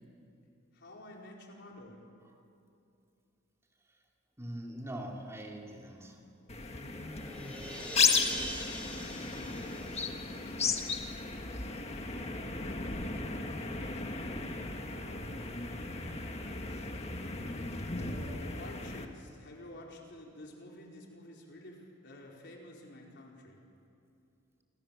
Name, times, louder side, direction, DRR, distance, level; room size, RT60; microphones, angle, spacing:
voice 1, 0.7-2.0 9.3-9.7 13.9-14.6 14.9-15.4 17.9-23.6, left 1 dB, 55° left, -1 dB, 4.7 m, -50 dB
voice 2, 4.4-6.2 11.1-11.8 17.2-17.4, right 1 dB, 15° right, 0 dB, 2.6 m, -44 dB
sound 1, 6.5-19.0, left 4 dB, 30° left, 1.7 m, -35 dB
sound 2, 6.5-11.1, equal, 5° left, 5.8 m, -43 dB
28.5 x 27.5 x 7.2 m, 2.6 s
head